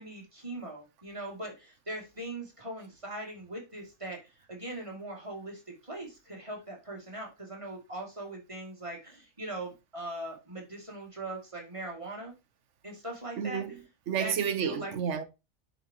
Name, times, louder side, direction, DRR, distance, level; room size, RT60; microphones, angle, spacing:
voice 1, 0.0-12.3 12.8-13.6 14.2-14.3 14.6-14.9, right 1 dB, 20° right, 2.5 m, -40 dB
voice 2, 13.4-15.2, right 8 dB, 60° right, 1.2 m, -31 dB
10.5 x 4.8 x 2.9 m
omnidirectional pair, 1.5 m